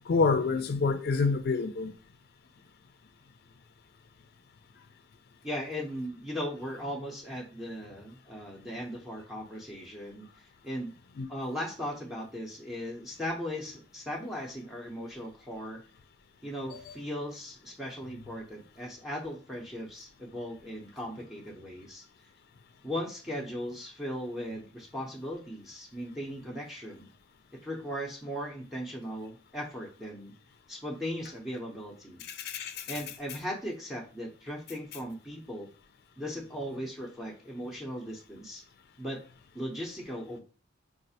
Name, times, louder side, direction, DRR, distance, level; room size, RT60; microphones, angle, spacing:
voice 1, 0.1-1.9 11.2-11.3 16.7-17.0 32.2-32.9, left 4 dB, 55° left, 0.4 m, -28 dB
voice 2, 5.4-10.9 11.3-15.8 16.4-22.1 22.8-27.1 27.6-30.3 30.7-32.2 32.9-35.7 36.2-38.6 39.0-39.2 39.5-40.4, equal, ahead, 0.6 m, -38 dB
4.0 x 2.4 x 2.7 m
head